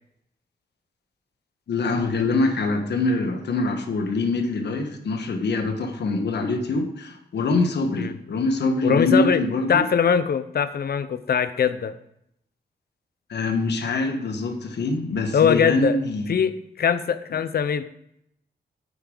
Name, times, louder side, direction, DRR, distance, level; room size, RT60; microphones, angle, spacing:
voice 1, 1.7-9.9 13.3-16.3, left 3 dB, 80° left, 6 dB, 1.4 m, -24 dB
voice 2, 8.8-9.4 9.7-12.0 15.3-16.0 16.3-17.8, left 7 dB, 65° left, 13 dB, 0.7 m, -21 dB
9.7 x 8.6 x 3.9 m, 0.75 s
cardioid pair, 75°, 17 cm